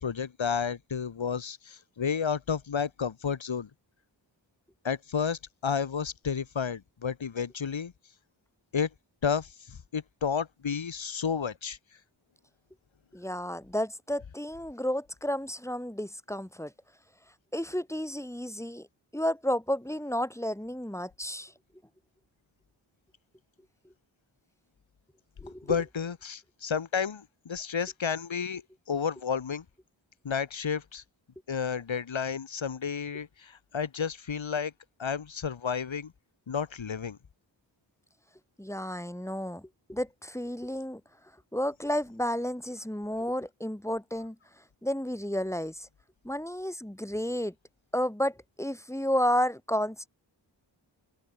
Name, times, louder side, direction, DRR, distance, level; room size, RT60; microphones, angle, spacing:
voice 1, 0.0-3.7 4.8-7.9 8.7-8.9 9.2-11.8 25.6-28.6 28.9-29.6 30.2-31.0 31.5-34.7 35.0-36.1 36.5-37.2, left 6 dB, 80° left, 4.7 m, -31 dB
voice 2, 13.1-16.7 17.5-18.9 19.1-21.5 25.4-25.8 38.6-41.0 41.5-44.4 44.8-45.9 46.2-47.5 47.9-50.1, equal, 5° left, 5.4 m, -31 dB
open air
cardioid pair, 65°, 45 cm